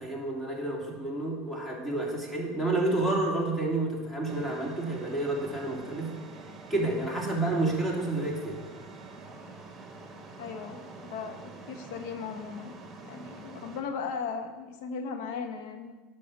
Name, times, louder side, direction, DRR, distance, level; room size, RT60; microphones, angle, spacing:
voice 1, 0.0-6.2 6.7-8.6, right 2 dB, 10° left, -2 dB, 2.9 m, -29 dB
sound 1, 4.2-13.8, right 3 dB, 25° right, 1.9 m, -46 dB
voice 2, 10.4-12.8 13.0-15.9, left 5 dB, 70° left, 6 dB, 1.2 m, -37 dB
10.5 x 5.9 x 6.1 m, 1.3 s
supercardioid pair, 100°, 0 cm